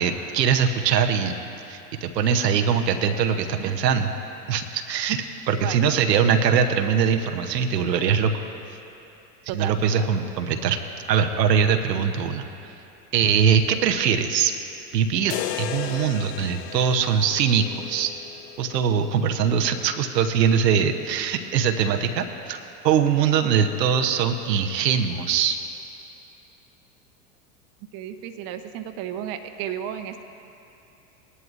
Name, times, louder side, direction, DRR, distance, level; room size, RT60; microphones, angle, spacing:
voice 1, 0.0-1.3 1.7-4.1 4.5-5.2 5.5-8.3 9.5-10.8 11.1-12.5 13.1-14.5 14.9-18.1 18.6-25.6, right 7 dB, 90° right, 6 dB, 0.8 m, -22 dB
voice 2, 5.6-6.4 9.5-10.3 27.9-30.2, right 10 dB, 45° right, 7 dB, 0.8 m, -34 dB
sound 1, 15.3-19.4, left 12 dB, 75° left, 0.6 m, -35 dB
18.5 x 11.0 x 2.5 m, 2.8 s
hypercardioid pair, 95°, 48 cm